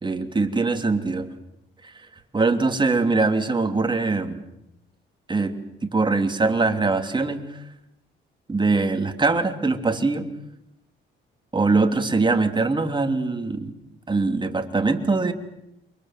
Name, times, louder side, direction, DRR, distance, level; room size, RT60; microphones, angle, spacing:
voice 1, 0.0-1.3 1.8-1.9 2.3-4.4 5.3-7.6 8.5-10.3 11.5-13.7 14.1-15.3, right 3 dB, 25° right, 6 dB, 3.1 m, -22 dB
29.0 x 24.0 x 7.7 m, 0.84 s
cardioid pair, 90°, 20 cm